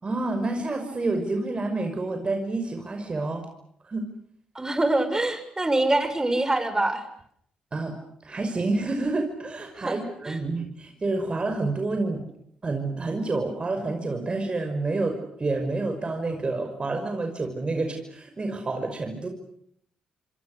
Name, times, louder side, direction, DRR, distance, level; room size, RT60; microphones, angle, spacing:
voice 1, 0.0-3.5 3.8-4.1 7.7-7.9 8.2-12.2 12.6-19.3, right 2 dB, 35° right, 5 dB, 5.8 m, -28 dB
voice 2, 4.6-7.0 9.8-10.4, right 2 dB, 20° right, 9 dB, 6.8 m, -25 dB
30.0 x 27.0 x 6.8 m, 0.70 s
hypercardioid pair, 45°, 3 cm